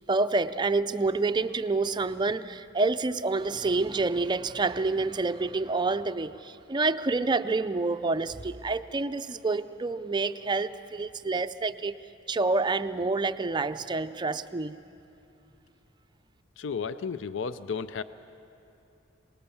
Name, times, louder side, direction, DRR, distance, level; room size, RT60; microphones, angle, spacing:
voice 1, 0.1-12.0 12.3-14.8, right 3 dB, 25° right, 0.5 m, -28 dB
voice 2, 16.6-18.0, left 5 dB, 70° left, 0.5 m, -33 dB
25.0 x 19.5 x 7.1 m
head